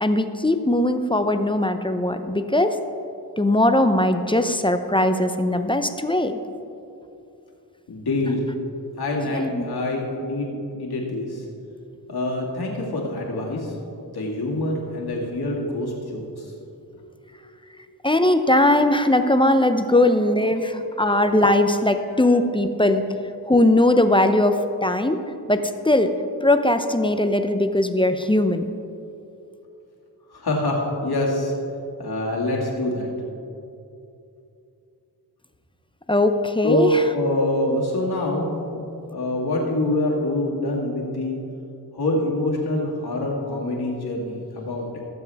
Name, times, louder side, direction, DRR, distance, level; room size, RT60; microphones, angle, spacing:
voice 1, 0.0-2.8 3.4-6.4 9.3-9.7 18.0-23.0 23.5-25.2 25.5-26.1 26.4-28.7 36.1-37.0, left 1 dB, 15° left, 8 dB, 0.6 m, -20 dB
voice 2, 7.9-8.4 9.0-11.4 12.1-13.7 14.1-16.5 16.9-17.1 20.6-20.7 21.0-21.2 22.1-22.2 30.3-31.5 32.0-33.1 36.6-41.4 41.9-45.0, left 1 dB, 70° left, -2 dB, 2.3 m, -25 dB
17.5 x 7.2 x 3.5 m, 2.7 s
cardioid pair, 65°, 39 cm